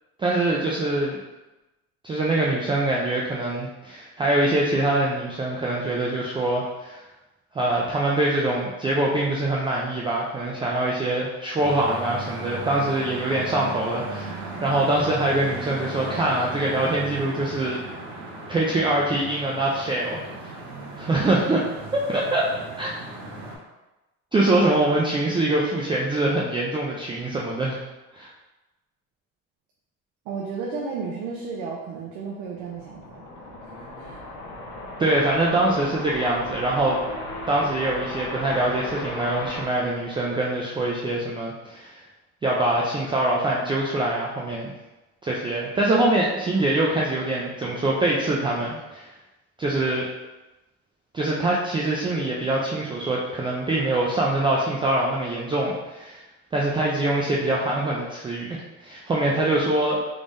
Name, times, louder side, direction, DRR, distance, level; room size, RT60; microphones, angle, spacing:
voice 1, 0.2-1.2 2.0-7.0 7.5-17.8 18.5-20.5 21.0-21.6 21.9-22.4 22.8-22.9 24.3-27.8 28.1-28.3 35.0-37.0 37.5-42.0 42.4-44.7 45.2-49.1 49.6-50.1 51.1-56.2 56.5-60.0, right 2 dB, 15° right, -4 dB, 0.3 m, -24 dB
sound 1, 11.6-23.6, right 2 dB, 60° right, 1.0 m, -36 dB
voice 2, 30.3-33.2 33.6-34.2 51.5-51.6, right 5 dB, 85° right, -3 dB, 0.7 m, -33 dB
sound 2, 32.4-40.8, left 1 dB, 90° left, 1.2 m, -36 dB
3.6 x 3.2 x 2.6 m, 1.0 s
cardioid pair, 120°, 32 cm